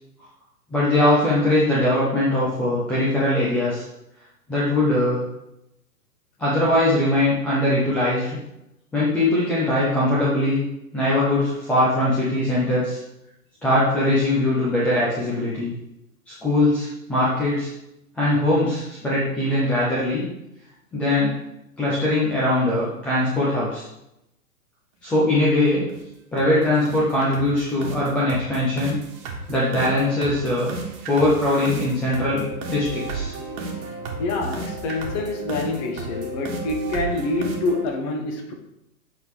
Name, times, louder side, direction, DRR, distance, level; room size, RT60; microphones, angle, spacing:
voice 1, 0.7-3.8 4.5-5.2 6.4-8.4 8.9-10.6 10.9-13.0 13.6-15.7 16.4-17.7 18.2-20.3 20.9-21.3 21.8-23.8 25.0-25.8 26.3-29.0 29.5-30.7 31.1-33.3, left 1 dB, 5° left, -8 dB, 0.5 m, -21 dB
sound 1, 25.4-25.5 25.9-26.1 26.4-26.5 26.9-37.9, right 3 dB, 35° right, 1.5 m, -33 dB
voice 2, 34.2-38.5, left 2 dB, 30° left, 3 dB, 1.2 m, -26 dB
7.8 x 3.8 x 4.7 m, 0.86 s
hypercardioid pair, 125°, 45 cm